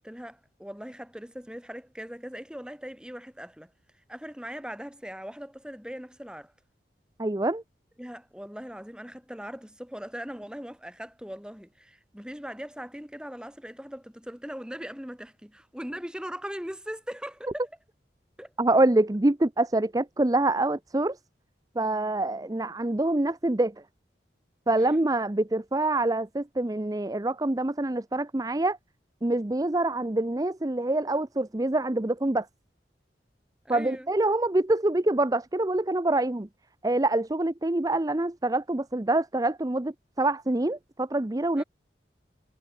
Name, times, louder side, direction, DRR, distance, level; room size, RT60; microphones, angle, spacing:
voice 1, 0.0-3.7 4.1-6.5 8.0-17.7 18.4-18.5 24.9-25.0 33.6-34.1 41.6-41.7, equal, 5° right, 2.7 m, -40 dB
voice 2, 7.2-7.6 18.6-21.2 21.8-23.7 24.7-28.8 29.2-32.5 33.7-36.5 36.8-41.6, right 2 dB, 20° right, 0.6 m, -25 dB
head